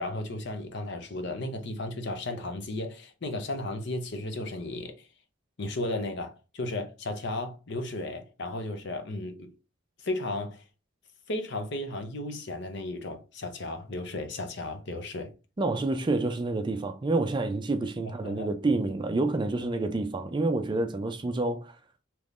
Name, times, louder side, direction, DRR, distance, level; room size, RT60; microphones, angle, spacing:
voice 1, 0.0-5.1 5.6-9.5 10.0-10.6 11.3-15.3 18.0-18.5, left 2 dB, 55° left, 0.7 m, -34 dB
voice 2, 15.6-21.8, right 2 dB, 25° right, 0.4 m, -28 dB
3.5 x 2.9 x 2.5 m
head